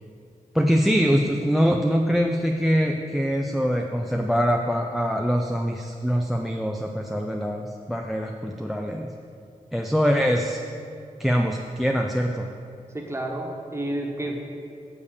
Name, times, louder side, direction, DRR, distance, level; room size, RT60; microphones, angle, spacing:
voice 1, 0.5-9.0 9.7-10.6 11.2-12.5, equal, ahead, 3 dB, 0.4 m, -23 dB
voice 2, 12.9-14.4, right 1 dB, 20° right, 0 dB, 1.2 m, -30 dB
7.2 x 6.7 x 7.0 m, 2.5 s
wide cardioid pair, 125°, 15 cm